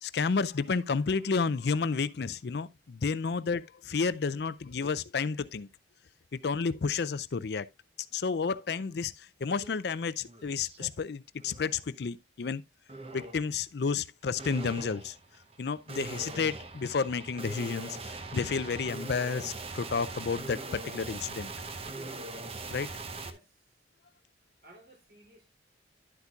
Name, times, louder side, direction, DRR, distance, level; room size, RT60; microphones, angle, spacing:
voice 1, 0.0-5.7 6.3-7.7 8.1-12.6 13.1-15.2 15.6-21.5 22.7-22.9, left 5 dB, 60° left, 0.4 m, -31 dB
sound 1, 9.6-9.7 10.1-10.9 11.4-11.8 12.9-13.5 14.4-23.3, right 3 dB, 30° right, 0.8 m, -41 dB
voice 2, 21.9-22.4 23.2-23.7 24.6-25.5, right 2 dB, 50° right, 3.4 m, -55 dB
11.0 x 8.2 x 2.4 m
head